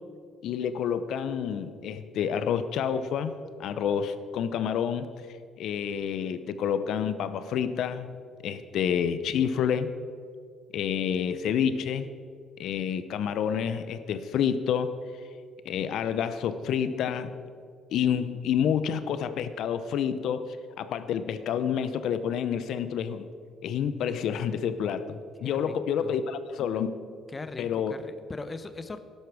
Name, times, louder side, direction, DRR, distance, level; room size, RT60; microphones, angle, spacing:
voice 1, 0.4-3.3 3.6-5.1 5.6-8.1 8.4-9.9 10.7-12.1 12.6-14.9 15.6-17.3 17.9-20.5 20.8-23.3 23.6-26.9 27.6-27.9, left 8 dB, 75° left, 12 dB, 0.7 m, -28 dB
voice 2, 25.4-25.8 26.0-26.2 27.3-29.0, left 3 dB, 30° left, 11 dB, 0.8 m, -39 dB
13.0 x 11.0 x 4.8 m, 2.3 s
supercardioid pair, 80°, 0 cm